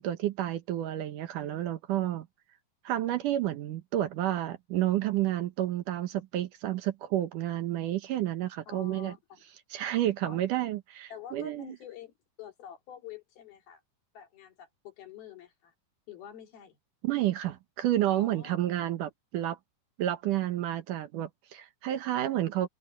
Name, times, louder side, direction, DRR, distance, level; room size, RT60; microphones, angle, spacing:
voice 1, 0.0-2.3 2.8-9.1 9.7-11.8 17.0-19.6 20.0-22.7, right 13 dB, 70° right, 2.4 m, -30 dB
voice 2, 8.7-9.4 10.2-10.4 11.1-13.8 14.1-15.7 16.1-16.8 18.2-18.6, left 9 dB, 85° left, 4.9 m, -47 dB
omnidirectional pair, 4.2 m